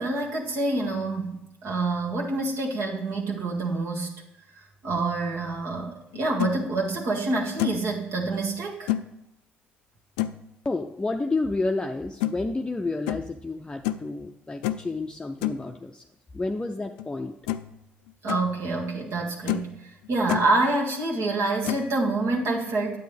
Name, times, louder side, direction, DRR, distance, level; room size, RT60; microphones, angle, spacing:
voice 1, 0.0-4.1 4.6-8.9 18.2-23.0, right 2 dB, 60° right, -1 dB, 1.8 m, -27 dB
sound 1, 6.1-6.5 7.1-7.2 7.6-7.9 8.9-9.1 10.2-10.4 12.2-12.3 13.1-13.3 13.8-14.1 14.6-14.9 15.4-15.6 17.0-17.1 17.5-17.8 18.1-18.4 19.0-19.1 19.5-19.7 20.0-20.5 21.6-21.9, left 14 dB, 80° left, 0.3 m, -28 dB
voice 2, 10.6-16.0 16.3-17.4, left 3 dB, 15° left, 4 dB, 0.6 m, -30 dB
9.2 x 7.9 x 3.5 m, 0.84 s
hypercardioid pair, 55°, 5 cm